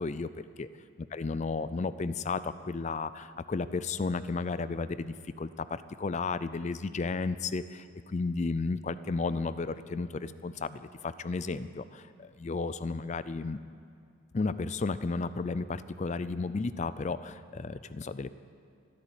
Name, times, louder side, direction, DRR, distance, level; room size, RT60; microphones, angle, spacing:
voice 1, 0.0-0.7 1.1-13.6 14.3-18.3, left 3 dB, 35° left, 14 dB, 0.4 m, -33 dB
13.5 x 12.5 x 8.2 m, 2.4 s
head